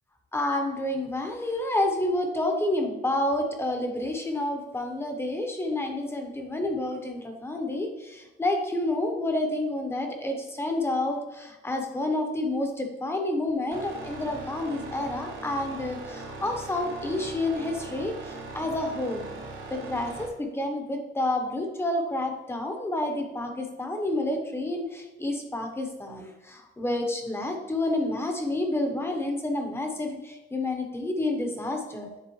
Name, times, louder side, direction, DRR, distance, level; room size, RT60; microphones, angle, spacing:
voice 1, 0.3-19.2 19.7-32.2, left 1 dB, 10° left, 3 dB, 0.9 m, -29 dB
sound 1, 13.7-20.3, right 3 dB, 70° right, 2.3 m, -40 dB
9.9 x 4.0 x 3.1 m, 1.1 s
cardioid pair, 155°, 21 cm